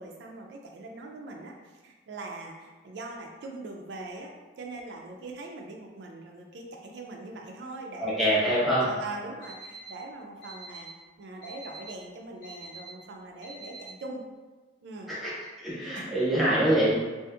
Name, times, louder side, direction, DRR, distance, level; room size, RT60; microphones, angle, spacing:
voice 1, 0.0-1.5 1.8-8.1 8.8-10.9 11.2-14.2 14.8-15.1 15.9-16.1, right 2 dB, 75° right, 1 dB, 0.4 m, -41 dB
voice 2, 8.0-8.9 15.1-15.3 15.6-16.9, right 1 dB, ahead, -9 dB, 0.8 m, -24 dB
Alarm, 9.4-9.9 10.4-10.9 11.4-11.9 12.4-12.9 13.4-13.9, left 2 dB, 80° left, 0.9 m, -48 dB
2.6 x 2.4 x 2.4 m, 1.3 s
head